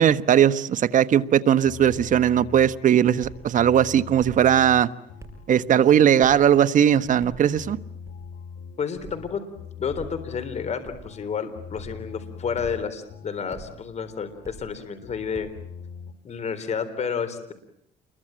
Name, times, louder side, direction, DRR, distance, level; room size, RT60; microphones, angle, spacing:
voice 1, 0.0-4.9 5.5-7.8, right 9 dB, 50° right, 13 dB, 1.1 m, -19 dB
sound 1, 1.6-16.1, left 7 dB, 85° left, 2.4 m, -43 dB
sound 2, 3.2-3.4 4.2-4.5 5.2-5.4 6.2-6.5 7.2-7.5 8.0-8.3 8.9-9.2 9.9-10.2 10.8-11.2 11.7-12.0 12.6-12.9 13.5-13.7 14.4-14.7 15.3-15.6, right 3 dB, 15° right, 5.0 m, -44 dB
voice 2, 8.8-9.4 9.8-15.5 16.2-17.5, left 6 dB, 40° left, 10 dB, 3.7 m, -30 dB
29.0 x 22.5 x 8.8 m, 0.75 s
cardioid pair, 110°, 17 cm